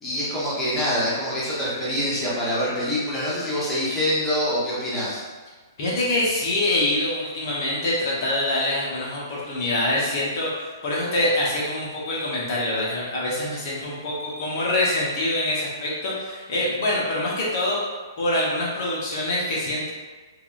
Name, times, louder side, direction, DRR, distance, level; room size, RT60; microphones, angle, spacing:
voice 1, 0.0-5.2, equal, 5° left, -10 dB, 1.0 m, -25 dB
voice 2, 5.8-17.8 18.2-19.9, left 1 dB, 50° left, -6 dB, 0.9 m, -25 dB
3.3 x 2.5 x 2.4 m, 1.3 s
hypercardioid pair, 135°, 2 cm